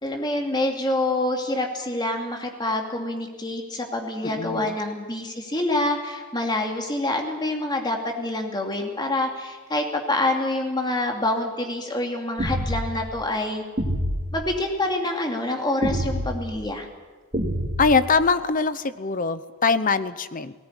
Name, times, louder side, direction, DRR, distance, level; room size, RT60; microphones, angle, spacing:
voice 1, 0.0-13.6 14.3-16.9, left 1 dB, 20° left, 2 dB, 2.6 m, -26 dB
voice 2, 4.2-4.8 17.8-20.5, left 4 dB, 40° left, 14 dB, 0.8 m, -22 dB
sound 1, 12.4-12.9 13.8-14.3 15.8-16.4 17.3-18.0, equal, 30° right, 3.2 m, -26 dB
19.0 x 18.5 x 10.0 m, 1.4 s
head